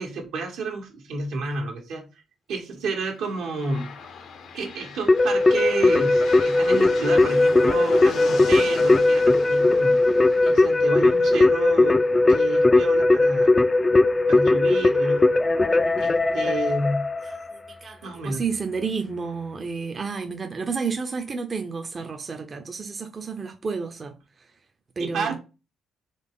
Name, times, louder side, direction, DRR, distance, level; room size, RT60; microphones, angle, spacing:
voice 1, 0.0-2.0 2.5-3.9 4.5-10.0 10.4-12.0 12.3-13.6 14.3-15.4 16.0-17.1 18.0-18.4 25.0-25.4, right 3 dB, 85° right, 1.4 m, -30 dB
sound 1, 3.1-12.9, left 5 dB, 70° left, 0.8 m, -40 dB
Keyboard (musical), 5.1-17.5, left 2 dB, 20° left, 0.3 m, -19 dB
voice 2, 17.5-24.1 25.0-25.4, right 5 dB, 35° right, 0.6 m, -31 dB
3.9 x 3.3 x 3.7 m
cardioid pair, 90°, 0 cm